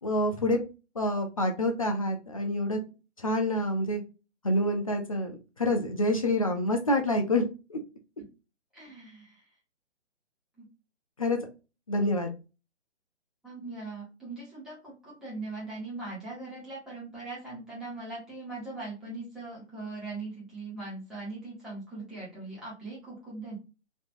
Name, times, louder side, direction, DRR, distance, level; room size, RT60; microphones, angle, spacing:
voice 1, 0.0-0.6 1.0-2.8 3.2-4.0 4.4-7.4 7.7-7.8 11.2-11.4 11.9-12.3, left 1 dB, 30° left, 4 dB, 0.4 m, -27 dB
voice 2, 8.7-9.5 10.6-10.7 13.4-23.5, right 3 dB, ahead, -9 dB, 1.3 m, -40 dB
3.2 x 2.8 x 2.5 m, 0.31 s
hypercardioid pair, 150°, 36 cm